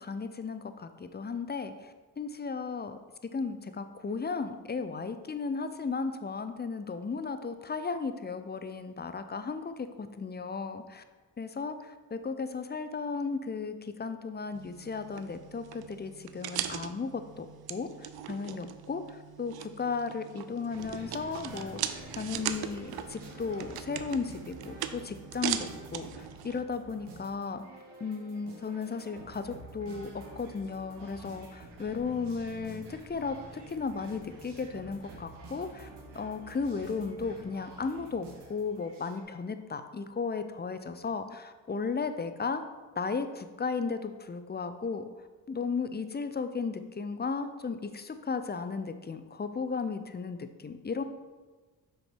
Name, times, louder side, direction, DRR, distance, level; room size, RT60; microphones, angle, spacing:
voice 1, 0.0-3.0 3.3-11.0 11.4-27.6 28.0-30.1 30.4-35.9 36.1-42.6 43.0-45.0 45.5-51.0, left 5 dB, 25° left, 9 dB, 0.6 m, -35 dB
sound 1, 14.5-26.6, right 10 dB, 65° right, 0.6 m, -40 dB
sound 2, 20.7-39.2, right 2 dB, 85° right, 1.3 m, -48 dB
6.3 x 4.6 x 4.5 m, 1.3 s
supercardioid pair, 55°, 40 cm